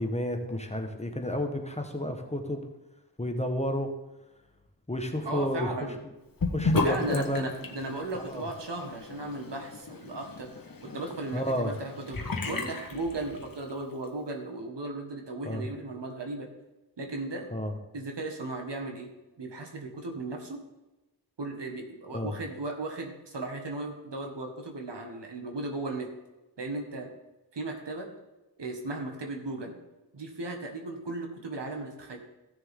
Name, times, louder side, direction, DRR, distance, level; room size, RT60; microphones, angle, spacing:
voice 1, 0.0-2.6 3.2-3.9 4.9-5.7 6.0-6.1 6.5-7.4 8.1-8.4 11.3-11.7 15.4-15.7 17.5-17.7 22.1-22.4, left 1 dB, 15° left, 4 dB, 1.3 m, -31 dB
voice 2, 5.3-5.9 6.8-10.5 10.8-16.5 17.0-17.5 17.9-19.1 19.4-20.6 21.4-26.1 26.6-27.1 27.5-28.1 28.6-29.8 30.1-32.2, right 2 dB, 80° right, 3 dB, 1.8 m, -36 dB
Sink (filling or washing) / Bathtub (filling or washing), 6.4-13.7, left 3 dB, 55° left, 1.3 m, -33 dB
15.0 x 6.7 x 3.7 m, 1.0 s
wide cardioid pair, 80°, 41 cm